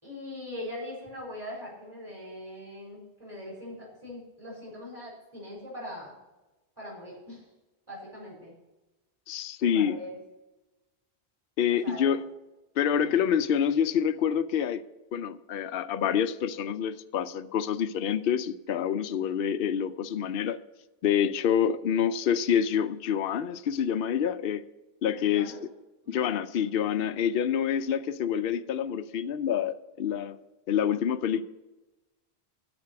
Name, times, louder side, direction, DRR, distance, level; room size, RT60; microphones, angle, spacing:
voice 1, 0.0-6.1 6.8-7.5 7.9-8.5 9.7-10.2 11.8-12.1 13.0-13.2 25.2-25.6 26.0-26.3, left 1 dB, 20° right, -5 dB, 4.6 m, -41 dB
voice 2, 9.3-10.0 11.6-12.2 12.8-14.8 15.1-20.6 21.0-24.6 25.0-25.5 26.1-30.4 30.7-31.4, left 8 dB, 65° left, 10 dB, 0.7 m, -27 dB
13.0 x 5.3 x 7.5 m, 1.1 s
omnidirectional pair, 1.1 m